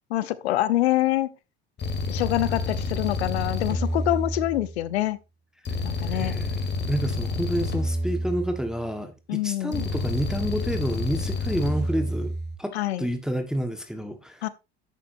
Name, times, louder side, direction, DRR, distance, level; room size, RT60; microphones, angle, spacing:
voice 1, 0.1-1.3 2.1-5.2 5.8-6.4 9.3-9.9 12.7-13.1 14.4-14.5, left 15 dB, 80° left, 0.8 m, -25 dB
sound 1, 1.8-4.9 5.6-8.9 9.7-12.6, left 2 dB, 35° left, 2.1 m, -29 dB
voice 2, 6.0-6.5 6.9-12.3 12.6-14.5, right 1 dB, ahead, 1.4 m, -29 dB
11.0 x 8.4 x 2.6 m
hypercardioid pair, 70°, 32 cm